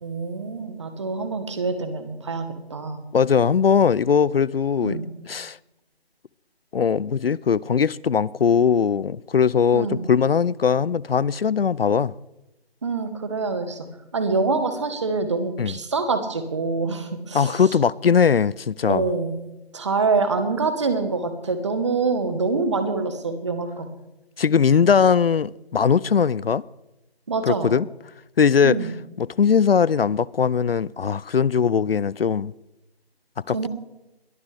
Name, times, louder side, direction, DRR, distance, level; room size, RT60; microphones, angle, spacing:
voice 1, 0.0-3.0 4.8-5.0 9.7-10.1 12.8-13.9 14.1-17.6 18.9-19.3 19.7-23.9 27.3-27.7 28.6-28.9 33.5-33.7, right 4 dB, 30° right, 1.2 m, -25 dB
voice 2, 3.1-5.0 5.3-5.6 6.7-12.1 15.6-15.8 17.3-19.1 24.4-26.6 27.4-27.9 28.4-28.8 29.2-32.5 33.5-33.7, left 6 dB, 65° left, 0.5 m, -20 dB
21.5 x 13.5 x 3.4 m
figure-of-eight pair, 160°, 31 cm